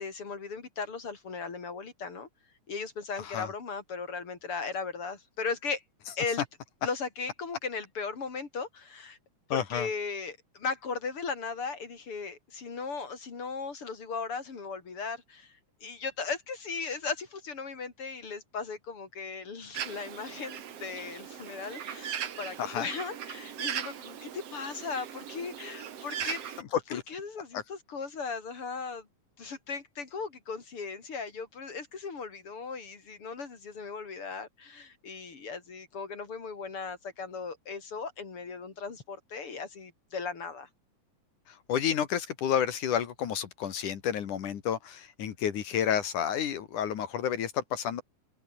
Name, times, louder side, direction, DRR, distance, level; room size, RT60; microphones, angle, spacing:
voice 1, 0.0-2.3 2.7-5.8 6.2-6.4 6.8-9.2 9.5-26.4 26.9-29.1 29.4-40.7, left 5 dB, 45° left, 4.3 m, -37 dB
voice 2, 9.5-9.9 22.6-22.9 26.2-26.3 26.9-27.0 27.5-27.6 41.5-48.0, left 9 dB, 80° left, 3.5 m, -30 dB
Bird, 19.7-26.6, right 9 dB, 55° right, 2.6 m, -39 dB
omnidirectional pair, 3.5 m